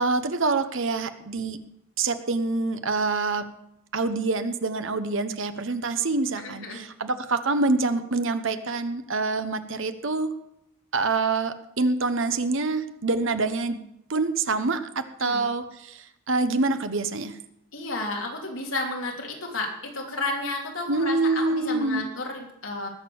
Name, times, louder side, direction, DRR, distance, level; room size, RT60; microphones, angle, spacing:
voice 1, 0.0-1.6 2.0-3.5 3.9-10.3 10.9-13.8 14.1-17.4 20.9-22.0, right 3 dB, 60° right, 10 dB, 1.0 m, -26 dB
voice 2, 6.4-6.8 15.2-15.4 17.7-22.9, left 2 dB, 65° left, -1 dB, 3.3 m, -32 dB
20.0 x 6.7 x 7.1 m, 0.81 s
head